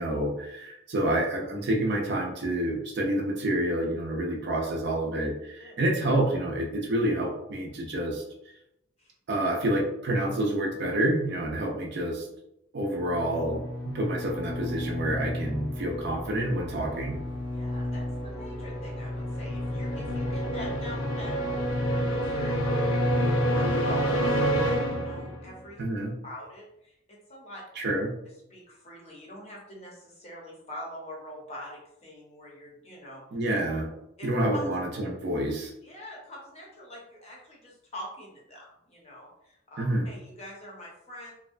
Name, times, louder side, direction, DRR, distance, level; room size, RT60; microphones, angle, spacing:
voice 1, 0.0-8.2 9.3-12.3 12.7-17.2 25.8-26.1 27.8-28.1 33.3-33.9 34.2-35.7 39.8-40.1, right 1 dB, 55° right, 0 dB, 0.5 m, -28 dB
sound 1, 13.0-25.6, equal, 70° left, 0.5 m, -29 dB
voice 2, 17.5-25.8 26.2-27.6 28.5-33.2 34.2-34.7 35.8-41.3, equal, 30° left, -3 dB, 0.7 m, -44 dB
2.5 x 2.1 x 2.4 m, 0.82 s
head